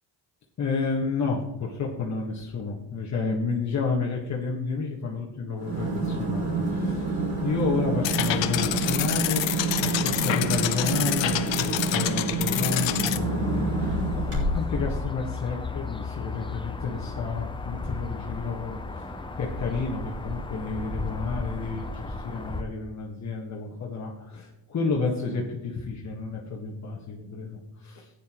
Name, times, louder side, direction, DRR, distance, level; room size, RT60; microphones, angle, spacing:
voice 1, 0.6-28.1, left 4 dB, 35° left, -2 dB, 1.5 m, -31 dB
sound 1, 5.6-14.8, right 3 dB, 30° right, 4.1 m, -28 dB
sound 2, 8.0-13.2, left 13 dB, 70° left, 0.8 m, -28 dB
sound 3, 13.1-22.6, left 3 dB, 10° left, 0.6 m, -34 dB
15.0 x 9.8 x 3.0 m, 0.97 s
cardioid pair, 145°, 46 cm